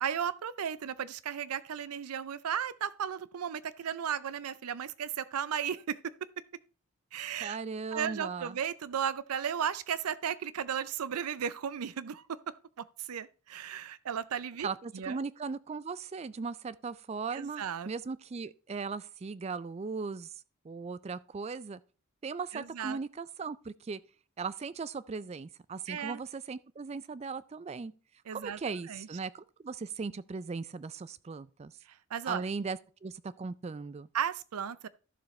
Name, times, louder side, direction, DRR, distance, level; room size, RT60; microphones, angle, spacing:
voice 1, 0.0-6.1 7.1-7.6 7.9-14.7 14.9-15.2 17.3-17.9 22.5-23.0 25.9-26.2 28.3-28.6 28.9-29.1 31.9-32.4 34.1-34.9, right 8 dB, 90° right, 0.5 m, -35 dB
voice 2, 7.4-8.6 14.6-20.3 20.6-21.8 22.2-24.0 24.4-27.9 28.3-31.7 32.3-34.1, right 4 dB, 30° right, 0.3 m, -38 dB
12.5 x 7.0 x 3.1 m
head